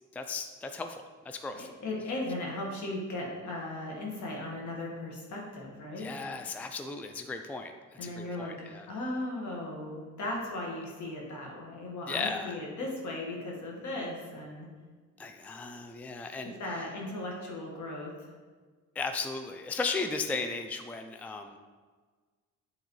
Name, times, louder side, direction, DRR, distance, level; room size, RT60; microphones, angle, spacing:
voice 1, 0.1-1.7 6.0-7.7 8.0-8.9 12.1-12.6 15.2-16.5 19.0-21.6, left 4 dB, 5° left, 6 dB, 0.3 m, -36 dB
voice 2, 1.5-6.1 8.0-8.6 8.9-14.7 16.4-18.1, left 2 dB, 70° left, -2 dB, 1.7 m, -37 dB
8.0 x 3.9 x 3.1 m, 1.4 s
cardioid pair, 90°, 30 cm